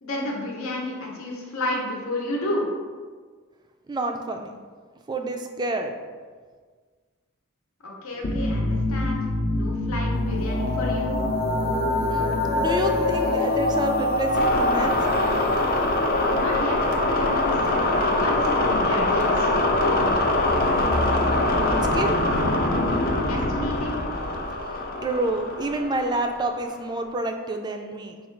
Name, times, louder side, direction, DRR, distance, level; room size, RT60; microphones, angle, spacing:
voice 1, 0.0-2.7 7.8-9.2 9.5-11.2 16.1-16.8 17.1-19.5 19.8-20.1 23.1-24.0, left 1 dB, 85° left, -2 dB, 0.8 m, -31 dB
voice 2, 3.9-4.5 5.1-5.9 12.1-15.0 21.1-22.2 25.0-28.2, right 2 dB, 20° right, 4 dB, 0.3 m, -28 dB
sound 1, 8.2-26.7, left 2 dB, 45° left, 0.5 m, -23 dB
4.9 x 2.3 x 4.4 m, 1.5 s
head